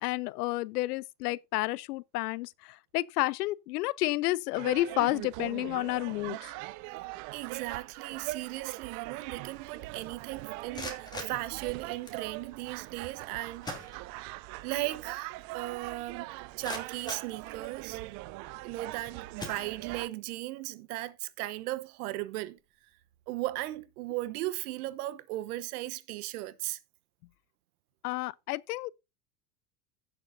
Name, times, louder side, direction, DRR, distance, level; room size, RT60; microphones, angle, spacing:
voice 1, 0.0-6.5 28.0-28.9, left 19 dB, 75° left, 0.6 m, -31 dB
sound 1, 4.6-20.1, right 19 dB, 40° right, 0.5 m, -41 dB
voice 2, 7.3-13.7 14.6-16.3 16.6-18.0 18.6-22.6 23.3-26.8, right 17 dB, 70° right, 1.0 m, -37 dB
sound 2, 10.5-12.3 13.2-13.3 13.6-14.5 14.9-15.0 15.5-15.6 16.2-18.0 18.7-18.9 19.3-20.2, left 2 dB, 10° left, 2.7 m, -44 dB
16.0 x 6.6 x 2.6 m
hypercardioid pair, 110°, 47 cm